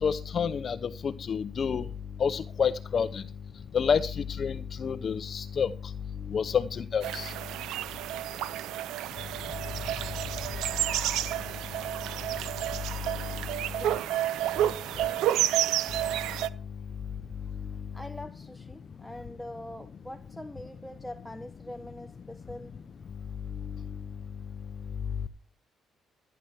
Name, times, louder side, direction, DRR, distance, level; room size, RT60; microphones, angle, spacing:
voice 1, 0.0-1.8 2.2-3.2 3.7-5.7 6.3-7.3, left 6 dB, 50° left, 0.7 m, -28 dB
sound 1, 7.0-16.5, right 13 dB, 90° right, 0.6 m, -30 dB
voice 2, 13.7-14.2 14.8-15.5 17.9-22.8, left 1 dB, 5° left, 1.0 m, -43 dB
13.5 x 10.5 x 4.4 m
cardioid pair, 90°, 0 cm